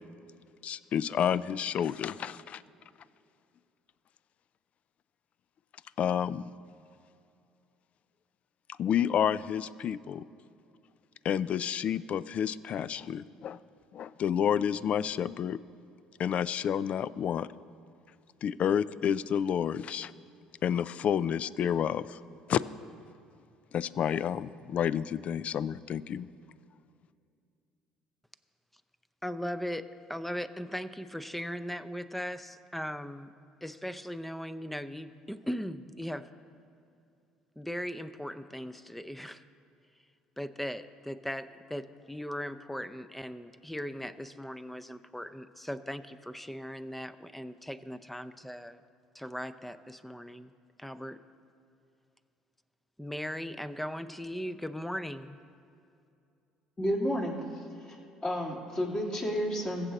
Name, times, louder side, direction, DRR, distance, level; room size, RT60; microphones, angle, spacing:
voice 1, 0.6-2.6 6.0-6.5 8.8-10.3 11.2-13.6 13.9-15.6 16.2-17.5 18.4-20.1 20.6-22.2 22.5-22.6 23.7-26.3, left 9 dB, 50° left, 19 dB, 0.4 m, -30 dB
voice 2, 29.2-33.3 33.6-36.3 37.6-39.4 40.4-48.8 49.1-50.5 50.8-51.2 53.0-55.4, equal, 5° left, 13 dB, 0.6 m, -38 dB
voice 3, 56.8-57.4 57.9-58.0 58.2-59.9, equal, 30° left, -1 dB, 3.1 m, -31 dB
22.0 x 7.5 x 4.1 m, 2.6 s
hypercardioid pair, 60°, 3 cm